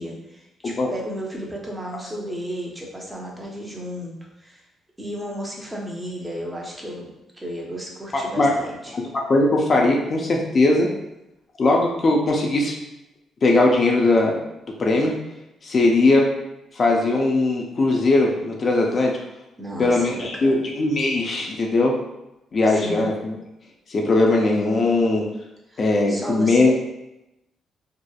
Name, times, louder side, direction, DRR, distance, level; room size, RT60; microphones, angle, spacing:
voice 1, 0.0-4.2 4.4-4.6 5.0-8.9 19.6-20.7 22.7-23.1 25.7-26.7, equal, 15° right, -2 dB, 0.6 m, -33 dB
voice 2, 8.1-8.5 8.9-10.9 11.6-12.7 13.4-14.4 14.8-15.1 15.6-16.3 16.8-19.1 19.8-21.9 22.5-23.3 23.9-25.2 25.8-26.7, left 2 dB, 45° left, 0 dB, 0.4 m, -19 dB
2.8 x 2.0 x 2.2 m, 0.91 s
cardioid pair, 90°, 0 cm